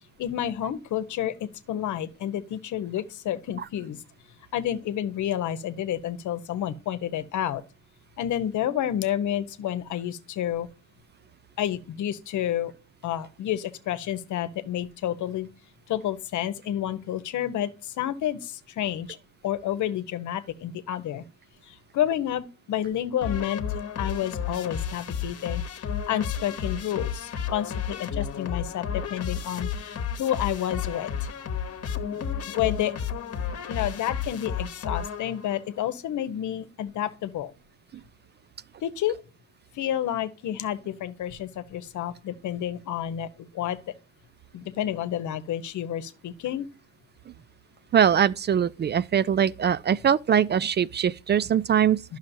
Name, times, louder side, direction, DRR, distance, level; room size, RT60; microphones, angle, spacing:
voice 1, 0.2-4.0 4.5-7.6 8.2-10.7 11.6-12.7 13.0-15.5 15.9-19.2 19.4-21.2 21.7-23.6 24.0-31.3 32.1-32.2 32.5-32.9 33.7-37.5 38.8-39.1 39.7-43.8 44.5-46.7, left 11 dB, 75° left, 0.9 m, -30 dB
sound 1, 23.2-35.6, left 7 dB, 55° left, 1.1 m, -32 dB
voice 2, 47.9-52.0, right 8 dB, 35° right, 0.4 m, -22 dB
10.5 x 6.4 x 2.6 m
cardioid pair, 90°, 30 cm